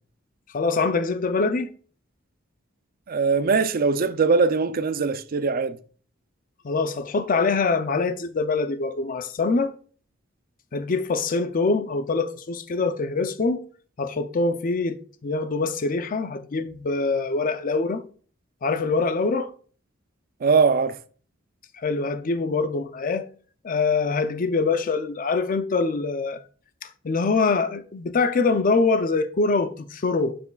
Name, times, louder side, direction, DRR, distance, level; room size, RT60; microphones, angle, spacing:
voice 1, 0.5-1.7 6.6-9.7 10.7-13.6 14.0-18.0 18.6-19.5 21.7-23.3 23.6-26.4 26.8-30.4, left 4 dB, 45° left, 0.5 m, -24 dB
voice 2, 3.1-5.8 20.4-21.0, right 4 dB, 50° right, 0.4 m, -21 dB
6.8 x 6.8 x 2.3 m
head